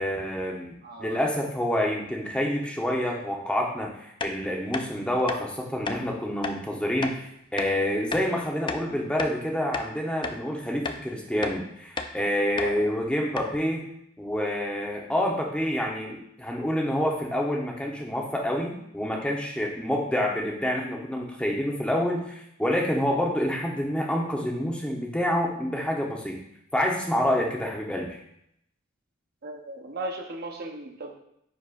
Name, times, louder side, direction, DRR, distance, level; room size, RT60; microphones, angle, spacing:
voice 1, 0.0-13.9 14.2-22.2 22.6-26.4 26.7-28.2, equal, 5° left, -1 dB, 0.9 m, -27 dB
voice 2, 0.8-1.2 12.6-12.9 29.4-31.1, right 2 dB, 50° right, 2 dB, 0.9 m, -36 dB
sound 1, 4.2-4.3 4.7-4.9 5.3-5.4 5.9-6.0 6.4-6.6 7.0-7.2 7.6-7.7 8.1-8.3 8.7-9.4 9.7-9.9 10.2-10.4 10.8-11.0 11.4-11.6 12.0-12.1 12.6-12.7 13.0-13.1 13.4-13.6, left 4 dB, 25° left, 0.4 m, -32 dB
9.6 x 4.2 x 2.5 m, 0.75 s
head